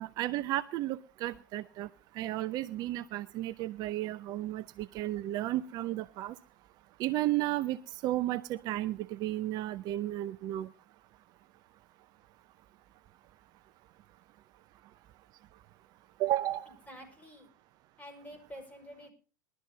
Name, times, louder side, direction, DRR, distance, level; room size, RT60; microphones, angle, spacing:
voice 1, 0.0-1.9 2.2-6.4 7.0-10.7 16.2-16.7, right 15 dB, 40° right, 14 dB, 0.6 m, -33 dB
voice 2, 16.7-17.5 18.0-19.1, equal, 15° left, 5 dB, 5.6 m, -49 dB
21.5 x 12.5 x 2.8 m, 0.37 s
hypercardioid pair, 95°, 10 cm